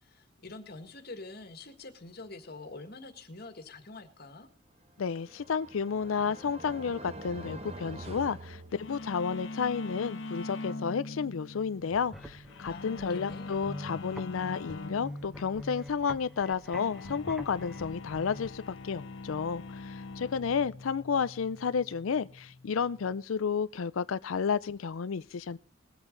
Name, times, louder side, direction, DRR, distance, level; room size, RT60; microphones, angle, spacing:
voice 1, 0.0-4.5 12.7-13.6, left 3 dB, 50° left, 1.8 m, -46 dB
sound 1, 4.9-9.3, right 1 dB, 30° right, 1.0 m, -45 dB
voice 2, 5.0-25.6, left 6 dB, 85° left, 0.5 m, -32 dB
sound 2, 8.7-23.2, left 3 dB, 70° left, 1.1 m, -43 dB
sound 3, 11.8-18.5, left 1 dB, ahead, 1.0 m, -46 dB
20.5 x 8.1 x 3.8 m
head